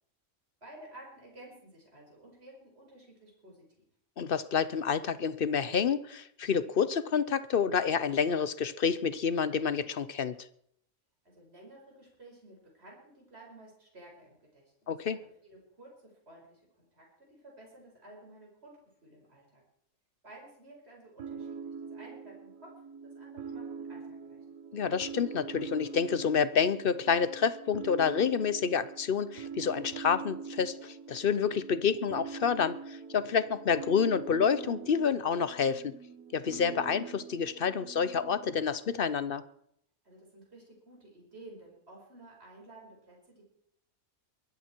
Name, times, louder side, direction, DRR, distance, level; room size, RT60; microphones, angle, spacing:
voice 1, 0.6-3.9 11.2-18.8 19.0-19.6 20.2-22.7 23.0-24.4 40.0-43.4, right 1 dB, 45° right, 5.5 m, -53 dB
voice 2, 4.2-10.4 14.9-15.2 24.7-35.9 36.3-39.4, left 6 dB, 50° left, 0.8 m, -28 dB
sound 1, 21.2-38.6, right 6 dB, 85° right, 1.6 m, -44 dB
22.5 x 14.0 x 4.5 m
omnidirectional pair, 1.5 m